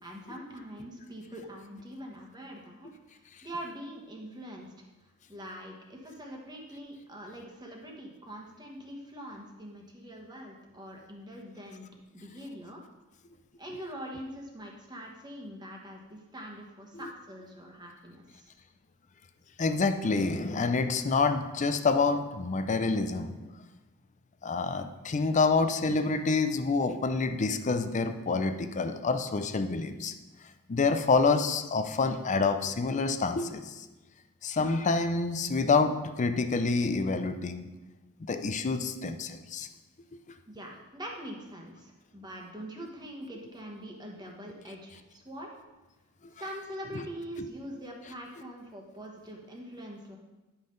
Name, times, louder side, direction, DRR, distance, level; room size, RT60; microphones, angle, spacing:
voice 1, 0.0-2.9 3.4-4.9 5.3-11.9 12.1-12.8 13.6-18.5 40.5-45.5 46.4-50.2, equal, 20° right, 0 dB, 1.2 m, -43 dB
voice 2, 19.6-23.5 24.4-30.1 30.7-33.7 34.4-37.7 38.2-39.7, left 4 dB, 35° left, 9 dB, 0.5 m, -27 dB
10.5 x 5.6 x 3.9 m, 1.1 s
head